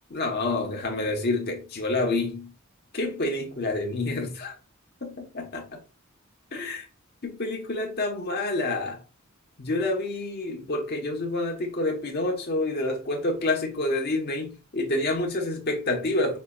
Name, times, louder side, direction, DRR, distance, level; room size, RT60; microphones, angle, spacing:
voice 1, 0.1-2.5 2.9-4.6 5.0-5.8 6.5-6.9 7.2-9.0 9.6-16.4, left 2 dB, 50° left, 1.2 m, -28 dB
5.8 x 2.9 x 2.4 m
head